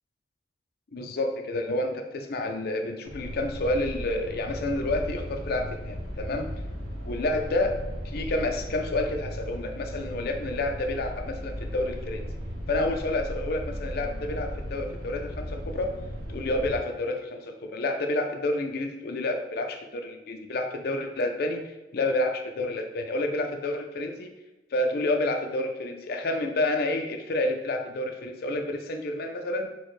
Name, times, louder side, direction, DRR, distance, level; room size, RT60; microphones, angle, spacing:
voice 1, 0.9-6.5 7.0-7.8 8.0-12.2 12.7-16.0 16.3-24.3 24.7-29.7, left 2 dB, 55° left, 4 dB, 0.4 m, -29 dB
sound 1, 3.0-16.8, equal, 80° right, 0.9 m, -36 dB
4.3 x 2.1 x 3.1 m, 1.1 s
head